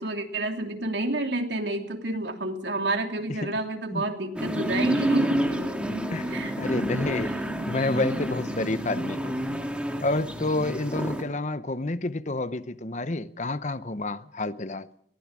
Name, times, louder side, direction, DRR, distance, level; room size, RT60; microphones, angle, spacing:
voice 1, 0.0-5.4 6.3-6.5, right 2 dB, 75° right, 3.1 m, -29 dB
sound 1, 4.4-11.2, equal, 5° right, 2.9 m, -29 dB
voice 2, 6.6-9.4 10.0-14.9, left 2 dB, 40° left, 0.9 m, -29 dB
22.0 x 19.0 x 7.5 m
head